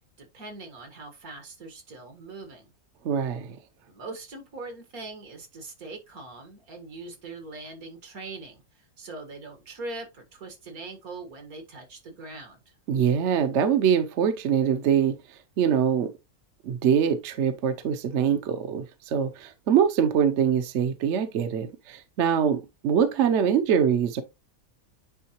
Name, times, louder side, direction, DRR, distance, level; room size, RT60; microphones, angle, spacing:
voice 1, 0.2-2.7 3.9-8.6 9.0-12.8, right 3 dB, 80° right, 2.1 m, -41 dB
voice 2, 3.0-3.6 12.9-16.1 16.6-24.2, right 8 dB, 60° right, 0.9 m, -24 dB
9.3 x 3.7 x 2.9 m
omnidirectional pair, 1.5 m